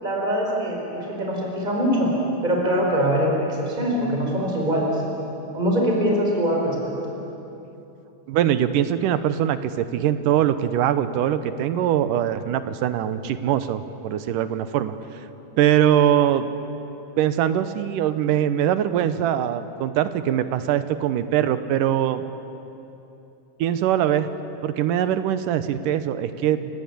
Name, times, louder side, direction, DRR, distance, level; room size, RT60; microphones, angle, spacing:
voice 1, 0.0-2.1 2.4-5.0 5.5-7.0, equal, 15° right, -1 dB, 4.5 m, -23 dB
voice 2, 8.3-15.0 15.6-16.5 17.2-22.2 23.6-24.3 24.6-26.7, right 10 dB, 80° right, 11 dB, 2.5 m, -22 dB
30.0 x 18.5 x 8.5 m, 2.9 s
omnidirectional pair, 3.8 m